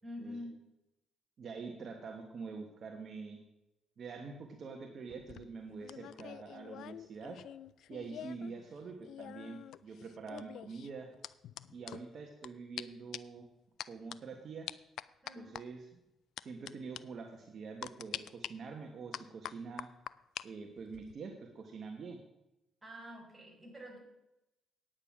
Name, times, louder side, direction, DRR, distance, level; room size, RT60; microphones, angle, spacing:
voice 1, 0.0-0.6 8.4-8.6 15.2-15.6 22.8-24.0, left 1 dB, 15° right, -1 dB, 4.9 m, -47 dB
voice 2, 1.4-3.4 4.0-7.4 7.9-11.1 11.7-13.5 13.9-14.7 15.3-15.9 16.4-19.9 20.4-22.2, right 4 dB, 55° right, 3 dB, 1.4 m, -45 dB
sound 1, 5.1-8.5 8.8-12.5 12.8-12.9 13.1-13.4 13.8-14.2 14.7-15.6 16.4-16.7 17.0-17.1 17.8-18.5 19.1-20.5 20.8-21.1, left 11 dB, 75° left, 0.4 m, -45 dB
9.6 x 8.9 x 6.0 m, 0.92 s
cardioid pair, 90°, 0 cm